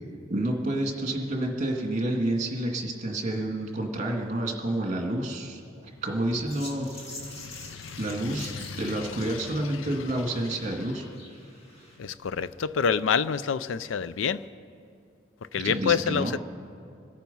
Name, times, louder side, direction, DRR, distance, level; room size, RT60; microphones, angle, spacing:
voice 1, 0.3-6.9 8.0-11.0 15.6-16.3, right 1 dB, 40° right, 1 dB, 2.0 m, -29 dB
sound 1, 6.5-12.0, left 1 dB, 35° left, 2.4 m, -46 dB
voice 2, 7.3-9.0 12.0-14.4 15.5-16.4, left 6 dB, 80° left, 16 dB, 0.4 m, -28 dB
26.5 x 9.1 x 5.5 m, 2.4 s
head